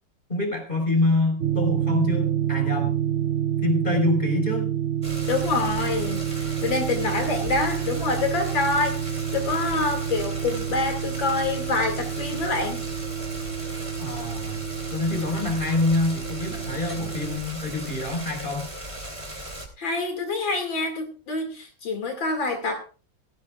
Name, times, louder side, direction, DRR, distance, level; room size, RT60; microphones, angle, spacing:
voice 1, 0.3-2.9 3.6-4.7 14.0-14.6 14.9-18.7, left 2 dB, 25° left, 3 dB, 4.8 m, -26 dB
sound 1, 1.4-17.4, right 10 dB, 50° right, 0.9 m, -28 dB
sound 2, 5.0-19.7, equal, 15° right, 2.8 m, -37 dB
voice 2, 5.3-12.8 19.8-22.9, left 3 dB, 80° left, 4 dB, 3.1 m, -26 dB
17.0 x 16.5 x 2.4 m, 0.34 s
omnidirectional pair, 2.0 m